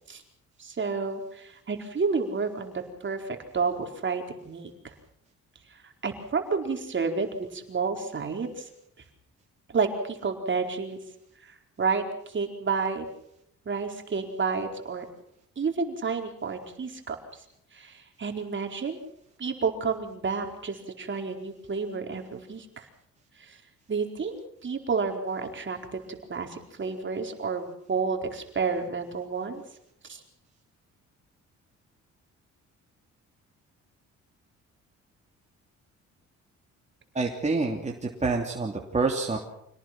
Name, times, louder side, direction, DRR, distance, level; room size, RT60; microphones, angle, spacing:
voice 1, 0.6-4.9 5.8-8.7 9.7-11.0 11.4-13.1 13.6-15.0 15.6-17.4 17.7-19.0 19.4-22.9 23.4-23.6 23.9-26.0 26.3-29.6 30.1-30.2, right 4 dB, 40° right, 4 dB, 4.6 m, -30 dB
voice 2, 37.1-39.4, right 3 dB, 25° right, 0 dB, 3.2 m, -27 dB
26.5 x 18.5 x 6.1 m, 0.74 s
cardioid pair, 90°, 30 cm